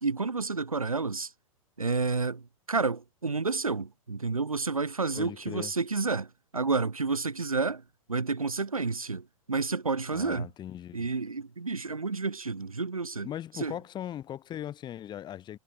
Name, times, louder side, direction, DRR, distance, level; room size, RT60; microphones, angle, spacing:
voice 1, 0.0-1.3 1.8-2.4 2.7-6.3 6.5-7.8 8.1-10.5 10.9-13.3 13.5-13.7, right 4 dB, 80° right, 1.6 m, -30 dB
voice 2, 5.1-5.7 10.1-11.1 13.2-15.6, left 11 dB, 25° left, 6.6 m, -39 dB
figure-of-eight pair, 100°, 18 cm